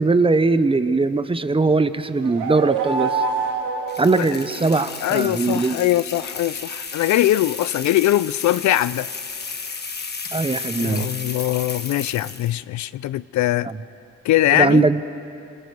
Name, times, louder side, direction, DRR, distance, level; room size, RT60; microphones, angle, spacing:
voice 1, 0.0-3.2 4.0-5.8 10.3-11.1 13.7-13.8 14.5-15.0, right 3 dB, 20° right, 12 dB, 0.8 m, -20 dB
sound 1, 2.0-4.9, right 5 dB, 75° right, 2.4 m, -26 dB
sound 2, 3.9-12.6, left 4 dB, 35° left, 1.6 m, -33 dB
voice 2, 5.0-9.1 10.8-13.7 14.2-14.9, left 14 dB, 70° left, 18 dB, 0.5 m, -21 dB
29.0 x 25.0 x 4.7 m, 2.7 s
cardioid pair, 90°, 30 cm